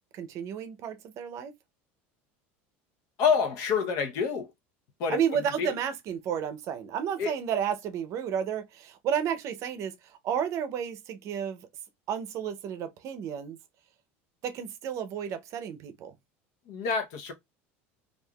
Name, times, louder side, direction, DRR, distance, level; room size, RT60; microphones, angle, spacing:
voice 1, 0.1-1.5 5.1-11.6 12.1-13.6 14.4-16.2, right 8 dB, 50° right, 0.6 m, -32 dB
voice 2, 3.2-4.5 5.0-5.2 5.6-5.7 7.2-7.3 16.7-17.3, left 6 dB, 60° left, 0.8 m, -27 dB
3.4 x 2.5 x 2.3 m
supercardioid pair, 105°, 6 cm